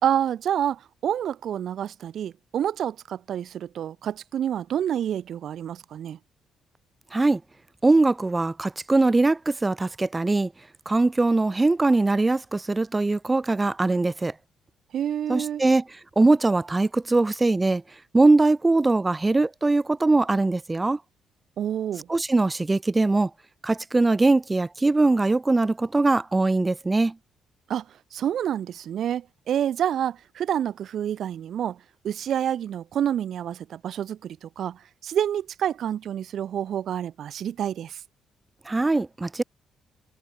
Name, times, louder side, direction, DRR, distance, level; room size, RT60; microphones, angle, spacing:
voice 1, 0.0-6.2 14.9-15.6 21.6-22.1 27.7-27.8 28.1-31.8 32.0-38.0, right 10 dB, 65° right, 2.2 m, -28 dB
voice 2, 7.8-10.5 10.9-14.3 15.3-15.8 16.2-17.8 18.1-21.0 22.1-23.3 23.6-27.1 38.7-39.4, right 2 dB, 20° right, 4.2 m, -21 dB
cardioid pair, 90°, 0 cm